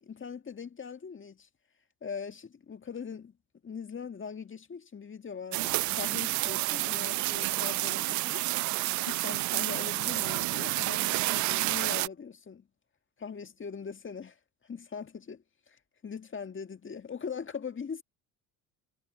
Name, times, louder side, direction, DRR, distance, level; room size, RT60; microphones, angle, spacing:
voice 1, 0.0-1.5 2.0-3.3 3.6-8.6 9.1-12.7 13.2-14.4 14.6-18.0, left 6 dB, 25° left, 1.9 m, -41 dB
sound 1, 5.5-12.1, right 20 dB, 40° right, 0.4 m, -29 dB
hypercardioid pair, 65°, 46 cm